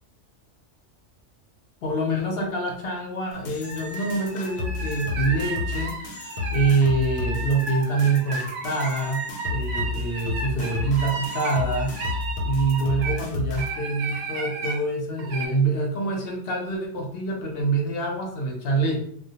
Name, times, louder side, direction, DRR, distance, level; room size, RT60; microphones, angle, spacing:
voice 1, 1.8-11.9 12.4-19.0, right 3 dB, 60° left, 0 dB, 0.7 m, -25 dB
sound 1, 3.3-13.7, left 4 dB, 85° left, 0.9 m, -32 dB
sound 2, 3.6-13.2 13.6-14.8 15.2-15.5, right 4 dB, 75° right, 0.9 m, -33 dB
2.2 x 2.1 x 2.7 m, 0.63 s
omnidirectional pair, 1.3 m